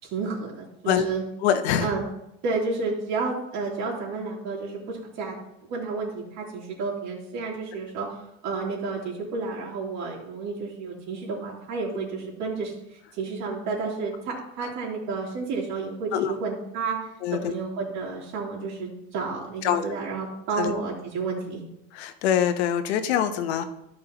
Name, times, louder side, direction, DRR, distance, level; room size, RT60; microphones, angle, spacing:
voice 1, 0.0-1.2 1.8-2.0 2.4-5.3 5.7-17.1 17.4-21.6, right 4 dB, 60° right, -5 dB, 3.2 m, -31 dB
voice 2, 1.4-1.9 16.1-16.3 17.2-17.5 19.6-19.8 20.6-20.7 21.9-23.6, left 9 dB, 90° left, 10 dB, 0.9 m, -24 dB
13.5 x 5.4 x 2.9 m, 0.84 s
supercardioid pair, 90°, 31 cm